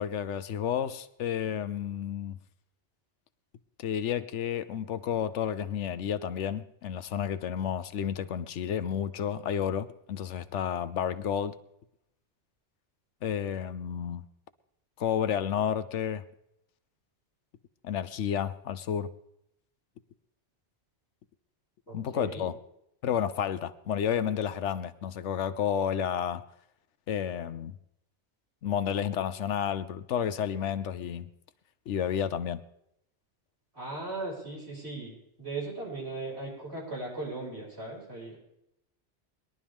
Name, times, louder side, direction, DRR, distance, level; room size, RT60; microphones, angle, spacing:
voice 1, 0.0-2.4 3.8-11.6 13.2-14.2 15.0-16.2 17.8-19.1 21.9-22.6 23.0-26.4 27.1-27.7 28.6-31.3 31.9-32.6, left 8 dB, 85° left, 13 dB, 1.0 m, -31 dB
voice 2, 21.9-22.4 33.7-38.4, right 3 dB, 65° right, -5 dB, 6.2 m, -38 dB
22.0 x 11.5 x 3.6 m, 0.79 s
omnidirectional pair, 1.2 m